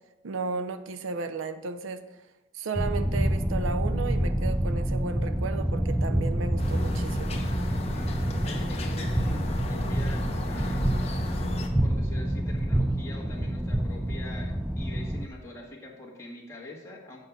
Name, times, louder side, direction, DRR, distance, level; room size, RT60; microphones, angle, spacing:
voice 1, 0.2-2.0 2.5-7.4, right 4 dB, 65° right, 10 dB, 0.5 m, -34 dB
sound 1, 2.7-15.3, right 1 dB, 5° right, 0.3 m, -27 dB
sound 2, 6.6-11.7, left 1 dB, 30° left, 0.8 m, -35 dB
voice 2, 7.9-10.2 10.5-11.0 11.8-17.2, left 1 dB, 15° left, -4 dB, 1.6 m, -44 dB
7.9 x 5.4 x 5.9 m, 1.0 s
head